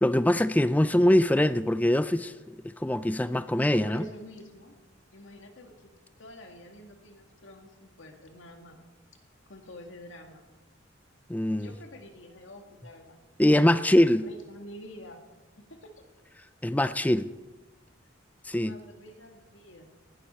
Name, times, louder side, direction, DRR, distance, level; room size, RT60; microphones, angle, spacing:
voice 1, 0.0-2.3 2.6-4.1 11.3-11.7 13.4-14.3 16.6-17.3 18.5-18.7, left 1 dB, 10° left, 0.4 m, -23 dB
voice 2, 3.8-4.7 5.1-5.9 6.2-8.8 9.5-10.4 11.5-13.2 14.2-15.2 15.7-16.0 18.6-19.9, equal, 85° left, 2.0 m, -48 dB
19.5 x 12.0 x 4.3 m
head